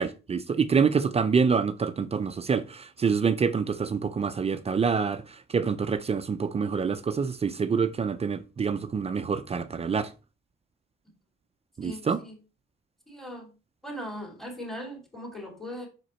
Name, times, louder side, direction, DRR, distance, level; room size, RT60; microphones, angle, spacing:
voice 1, 0.0-10.1 11.8-12.2, right 5 dB, 30° right, 0.5 m, -26 dB
voice 2, 11.8-12.3 13.1-13.5 13.8-15.9, equal, ahead, 2.6 m, -39 dB
5.9 x 5.0 x 4.3 m
cardioid pair, 90°, 20 cm